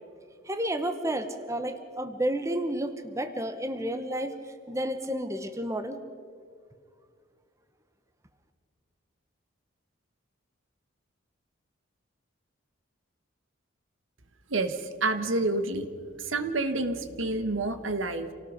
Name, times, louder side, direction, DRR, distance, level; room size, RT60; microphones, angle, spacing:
voice 1, 0.5-4.4 4.7-6.0, right 1 dB, 15° right, 8 dB, 1.1 m, -31 dB
voice 2, 14.5-15.9 16.2-18.3, right 2 dB, 75° right, 9 dB, 1.4 m, -28 dB
28.0 x 18.5 x 5.1 m, 2.1 s
head